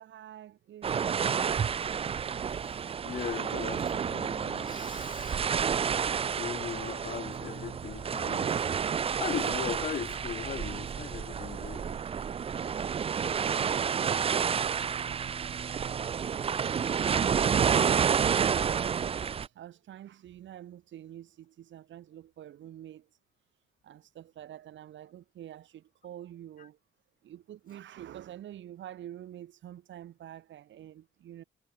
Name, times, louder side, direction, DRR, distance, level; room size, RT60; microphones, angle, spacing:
voice 1, 0.0-1.9 13.2-17.6 18.0-19.0 19.4-23.1 23.8-26.8 27.2-31.4, right 11 dB, 70° right, 2.0 m, -48 dB
sound 1, 0.8-19.5, right 7 dB, 30° right, 0.4 m, -30 dB
voice 2, 3.0-5.4 6.3-12.0 26.6-26.7, left 8 dB, 45° left, 0.7 m, -39 dB
cardioid pair, 90°, 20 cm